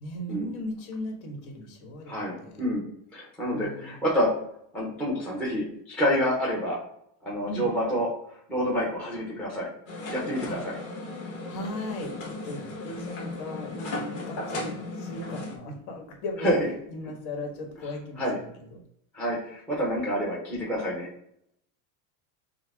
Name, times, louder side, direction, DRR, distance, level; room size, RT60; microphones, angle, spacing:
voice 1, 0.0-2.6 3.5-4.0 7.5-7.7 10.4-10.6 11.5-16.6 16.9-18.8, left 1 dB, 65° left, 2 dB, 1.5 m, -37 dB
voice 2, 2.1-2.8 3.1-4.3 4.7-6.8 7.2-8.1 8.5-9.7 10.1-10.8 16.4-16.7 18.2-18.4 19.1-21.1, equal, 5° left, -5 dB, 0.4 m, -28 dB
sound 1, 9.9-15.6, left 2 dB, 30° left, 1.0 m, -36 dB
5.7 x 2.0 x 3.4 m, 0.72 s
supercardioid pair, 170°, 48 cm